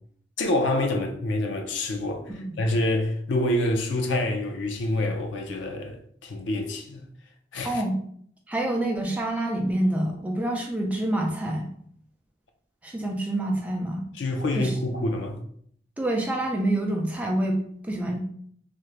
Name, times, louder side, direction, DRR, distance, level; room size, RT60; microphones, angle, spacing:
voice 1, 0.4-2.3 2.6-6.0 6.2-7.1 7.5-7.8 14.2-15.4, left 1 dB, 85° left, 0.5 m, -26 dB
voice 2, 7.6-8.0 8.5-11.7 12.8-14.0 14.5-14.7 16.0-17.6 17.9-18.2, right 1 dB, 10° right, 0.4 m, -27 dB
2.6 x 2.5 x 3.1 m
head